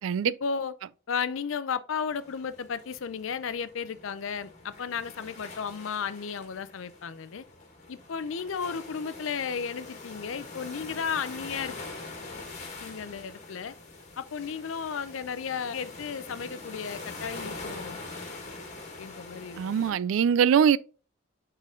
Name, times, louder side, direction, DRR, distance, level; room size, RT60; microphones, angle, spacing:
voice 1, 0.2-0.7 1.1-7.4 7.9-11.8 12.8-13.7 14.2-18.0 19.0-20.0, left 6 dB, 80° left, 0.5 m, -34 dB
sound 1, 2.1-19.9, left 3 dB, 40° left, 1.7 m, -44 dB
voice 2, 19.6-20.8, right 8 dB, 80° right, 0.3 m, -22 dB
7.3 x 4.0 x 3.7 m
head